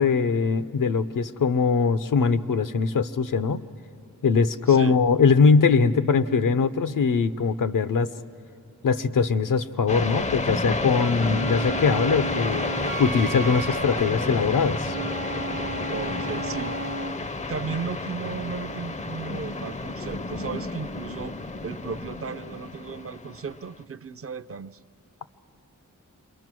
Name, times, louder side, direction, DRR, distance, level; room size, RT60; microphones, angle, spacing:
voice 1, 0.0-3.6 4.2-8.1 8.8-12.6 13.0-14.9, left 5 dB, 80° left, 12 dB, 0.7 m, -21 dB
voice 2, 4.7-5.0 15.9-16.8 17.4-21.4 21.6-24.8, right 5 dB, 45° right, 13 dB, 0.5 m, -35 dB
sound 1, 9.9-23.8, left 3 dB, 25° left, 0.4 m, -31 dB
Wind instrument woodwind instrument, 11.2-17.2, right 3 dB, 80° right, 0.8 m, -34 dB
28.0 x 22.0 x 6.1 m, 2.8 s
wide cardioid pair, 125°, 32 cm